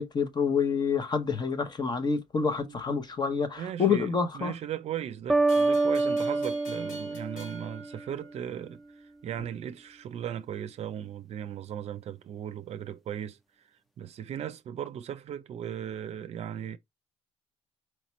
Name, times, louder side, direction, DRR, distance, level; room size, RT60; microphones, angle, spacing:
voice 1, 0.0-4.5, left 5 dB, 35° left, 0.9 m, -28 dB
voice 2, 2.6-3.0 3.6-13.7 14.0-16.8, right 9 dB, 55° right, 0.5 m, -37 dB
sound 1, 5.3-8.1, right 3 dB, ahead, 0.4 m, -27 dB
sound 2, 5.5-8.7, equal, 70° left, 2.9 m, -47 dB
4.5 x 2.8 x 3.1 m
cardioid pair, 90°, 13 cm